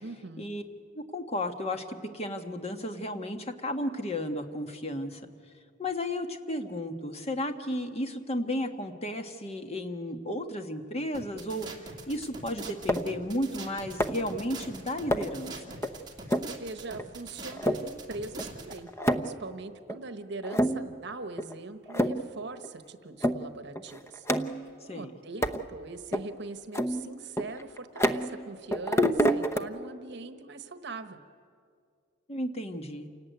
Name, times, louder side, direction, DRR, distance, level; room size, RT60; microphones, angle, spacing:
voice 1, 0.0-0.5 16.5-24.3 24.8-31.2, right 3 dB, 65° right, 10 dB, 1.2 m, -41 dB
voice 2, 0.9-1.8 2.1-5.2 5.8-15.8 24.9-25.1 32.3-33.1, left 1 dB, 35° left, 6 dB, 1.5 m, -33 dB
sound 1, 11.1-18.8, right 3 dB, 25° right, 2.5 m, -43 dB
sound 2, 12.9-13.2 14.0-14.3 15.1-15.4 15.8-15.9 16.3-16.6 17.0-17.1 17.5-17.8 18.4-18.5 18.7-19.4 19.9-20.0 20.4-21.0 21.4-21.5 21.9-22.3 22.6-22.7 23.2-23.4 23.8-24.7 25.4-25.6 26.1-26.2 26.7-28.5 28.7-29.6, equal, 15° left, 0.8 m, -28 dB
28.5 x 18.0 x 9.4 m, 2.2 s
head